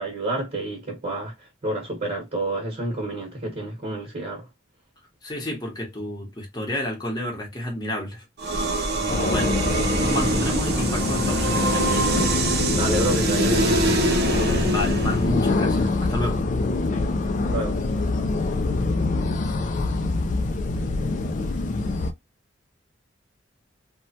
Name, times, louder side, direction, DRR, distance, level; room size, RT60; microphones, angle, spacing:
voice 1, 0.0-4.5 12.7-14.1 17.4-17.8, right 1 dB, 40° right, 1.0 m, -29 dB
voice 2, 5.2-8.2 8.9-9.5 9.9-12.0 14.7-16.4, left 1 dB, 20° left, 0.9 m, -30 dB
sound 1, 8.4-15.3, right 2 dB, 60° right, 0.6 m, -24 dB
sound 2, 9.1-22.1, left 3 dB, 45° left, 0.3 m, -25 dB
3.0 x 2.1 x 2.7 m
head